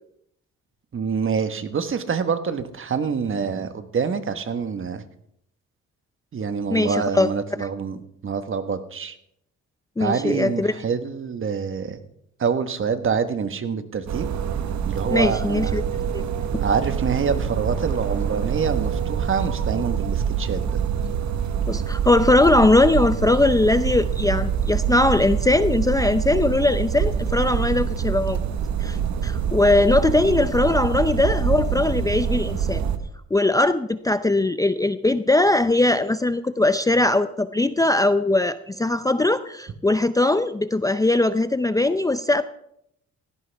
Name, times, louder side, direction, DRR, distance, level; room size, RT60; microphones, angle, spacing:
voice 1, 0.9-5.0 6.3-8.0 8.2-9.1 10.0-12.0 12.4-14.3 14.9-15.8 16.6-20.8, right 6 dB, 45° right, 10 dB, 1.3 m, -26 dB
voice 2, 6.7-7.3 7.6-7.7 10.0-10.8 15.1-15.8 16.1-16.2 16.5-16.6 21.7-28.4 28.8-29.0 29.2-32.8 33.3-42.4, left 2 dB, 10° left, 12 dB, 0.5 m, -20 dB
sound 1, 14.1-33.0, right 7 dB, 65° right, 1.3 m, -25 dB
17.5 x 15.5 x 3.5 m, 0.74 s
cardioid pair, 90°, 30 cm